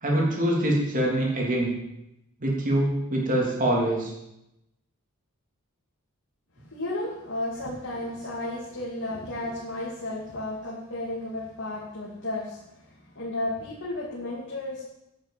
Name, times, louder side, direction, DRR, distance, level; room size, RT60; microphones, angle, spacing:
voice 1, 0.0-1.7 2.4-4.1, right 1 dB, 40° right, -2 dB, 3.3 m, -24 dB
voice 2, 6.6-14.8, left 1 dB, 60° left, -5 dB, 2.5 m, -33 dB
10.0 x 7.4 x 7.6 m, 0.87 s
head